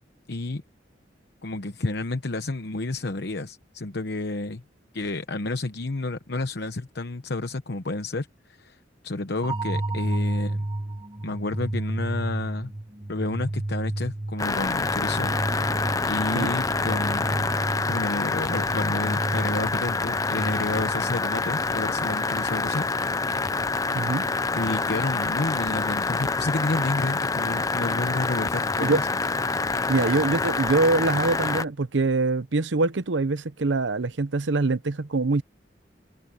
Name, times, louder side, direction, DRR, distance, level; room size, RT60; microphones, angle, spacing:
voice 1, 0.3-0.6 1.4-4.6 4.9-10.6 11.2-12.7 13.1-15.3 16.0-17.5 17.9-22.9 24.5-29.1, left 2 dB, 60° left, 1.0 m, -30 dB
sound 1, 9.4-21.4, right 1 dB, 25° right, 1.1 m, -31 dB
sound 2, 14.4-31.6, left 3 dB, 20° left, 0.5 m, -26 dB
voice 2, 23.9-24.3 28.8-29.0 29.9-35.4, right 3 dB, 75° right, 0.8 m, -24 dB
head